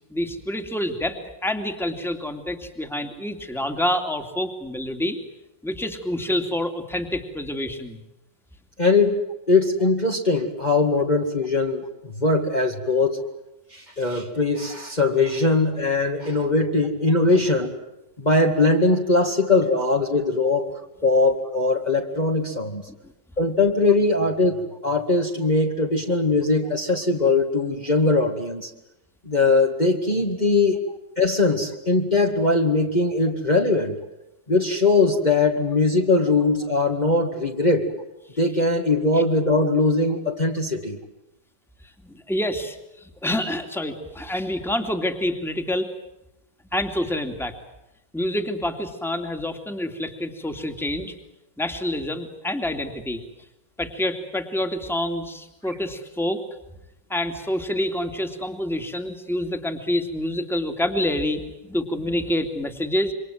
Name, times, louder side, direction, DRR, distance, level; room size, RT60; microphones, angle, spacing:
voice 1, 0.1-5.2 5.6-8.0 39.1-39.2 42.0-45.9 46.7-47.5 48.1-51.1 51.6-53.2 53.8-56.4 57.1-63.1, left 1 dB, ahead, 6 dB, 2.7 m, -27 dB
voice 2, 8.8-9.2 9.5-13.2 13.7-17.7 18.2-20.7 21.0-22.8 23.4-28.7 29.3-30.8 31.2-33.9 34.5-37.9 38.4-41.0, left 3 dB, 25° left, 1 dB, 2.3 m, -21 dB
28.0 x 25.5 x 7.7 m, 0.91 s
omnidirectional pair, 1.9 m